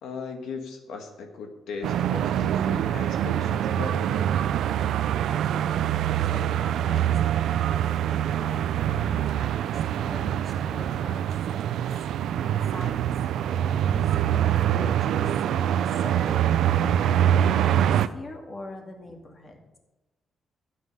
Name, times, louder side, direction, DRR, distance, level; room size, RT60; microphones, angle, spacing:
voice 1, 0.0-4.3, left 5 dB, 90° left, 3 dB, 1.7 m, -38 dB
sound 1, 1.8-18.1, right 10 dB, 80° right, 0.5 m, -24 dB
voice 2, 5.0-5.7 6.2-11.9 12.4-13.0 13.9-15.3 15.9-19.7, left 2 dB, 30° left, 2 dB, 2.2 m, -43 dB
13.0 x 9.4 x 5.5 m, 1.0 s
cardioid pair, 130°, 0 cm